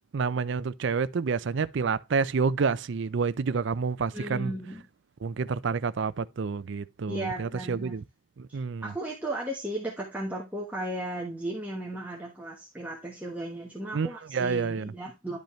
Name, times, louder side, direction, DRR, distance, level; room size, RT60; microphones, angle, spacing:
voice 1, 0.1-4.5 5.2-8.0 8.4-8.9 13.9-14.1 14.3-14.9, right 5 dB, 55° right, 0.4 m, -28 dB
voice 2, 4.1-4.8 7.1-8.0 8.5-15.4, right 1 dB, 5° right, 1.2 m, -35 dB
10.5 x 5.3 x 3.1 m
head